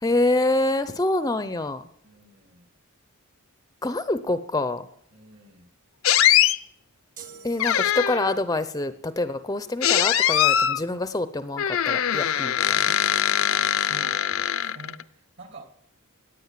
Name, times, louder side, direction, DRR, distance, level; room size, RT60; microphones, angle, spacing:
voice 1, 0.0-1.9 3.8-4.9 7.4-12.9, left 2 dB, 15° left, 12 dB, 0.6 m, -26 dB
voice 2, 2.0-2.7 5.1-5.7 13.5-15.7, right 2 dB, 55° right, 5 dB, 2.8 m, -47 dB
sound 1, 6.0-6.6 7.6-8.3 9.8-10.8 11.6-15.0, left 10 dB, 65° left, 0.6 m, -22 dB
sound 2, 7.2-8.5, right 6 dB, 40° right, 1.6 m, -46 dB
17.5 x 9.9 x 7.5 m, 0.71 s
head